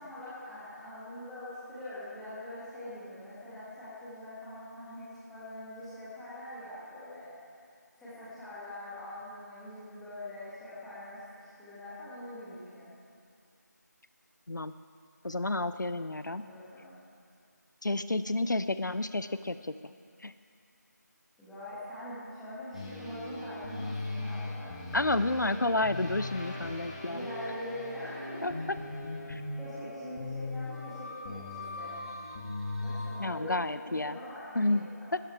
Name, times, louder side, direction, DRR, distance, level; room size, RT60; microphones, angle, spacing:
voice 1, 0.0-7.3 8.0-12.9 16.4-17.0 21.4-25.1 27.1-28.5 29.6-32.0 32.8-35.2, left 1 dB, ahead, -12 dB, 1.7 m, -43 dB
voice 2, 15.2-16.4 17.8-19.7 20.2-20.3 24.9-27.3 28.4-28.5 29.3-29.4 33.2-34.2 34.6-35.2, left 2 dB, 90° left, 13 dB, 0.6 m, -30 dB
sound 1, 22.7-33.1, left 2 dB, 20° left, 1.7 m, -39 dB
17.0 x 13.0 x 4.5 m, 2.3 s
figure-of-eight pair, 170°, 10 cm